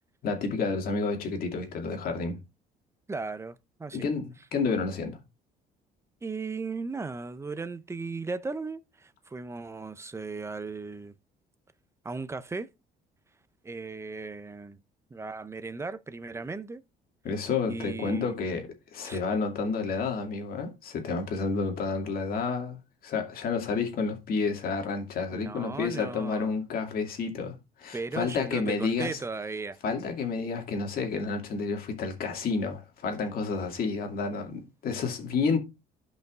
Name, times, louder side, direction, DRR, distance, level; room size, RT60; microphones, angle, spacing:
voice 1, 0.2-2.4 3.9-5.2 17.2-29.2 29.8-35.6, left 4 dB, 60° left, 2.2 m, -30 dB
voice 2, 3.1-4.1 6.2-11.1 12.0-12.7 13.6-14.8 15.1-16.8 17.7-18.4 19.1-19.2 25.3-26.5 27.9-29.8, right 4 dB, 15° right, 0.6 m, -36 dB
13.5 x 5.3 x 2.5 m
cardioid pair, 110°, 17 cm